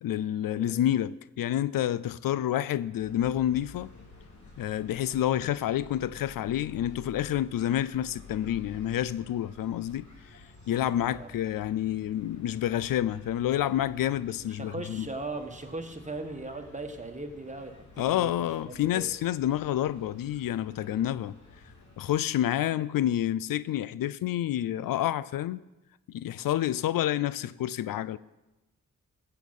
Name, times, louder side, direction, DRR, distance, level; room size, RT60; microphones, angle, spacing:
voice 1, 0.0-3.9 4.6-10.1 10.3-10.4 10.7-15.1 18.0-21.4 22.0-25.6 26.1-28.2, left 12 dB, 85° left, 0.5 m, -29 dB
sound 1, 3.0-22.2, left 2 dB, 60° left, 3.0 m, -51 dB
voice 2, 14.5-19.1, right 2 dB, 20° right, 1.6 m, -39 dB
15.5 x 7.8 x 5.3 m
cardioid pair, 65°, 33 cm